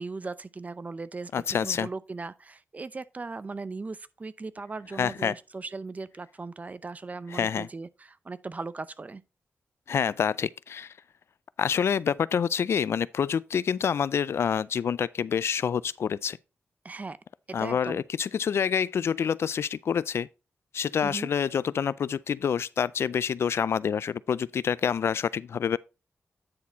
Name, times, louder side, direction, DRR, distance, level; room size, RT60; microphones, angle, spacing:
voice 1, 0.0-9.2 16.8-17.2 17.5-18.0 21.0-21.3, right 3 dB, 35° right, 0.6 m, -38 dB
voice 2, 1.3-1.9 5.0-5.3 7.3-7.7 9.9-10.9 11.6-16.4 17.5-20.3 20.7-25.8, left 7 dB, 75° left, 0.3 m, -27 dB
9.6 x 4.2 x 4.0 m
cardioid pair, 80°, 4 cm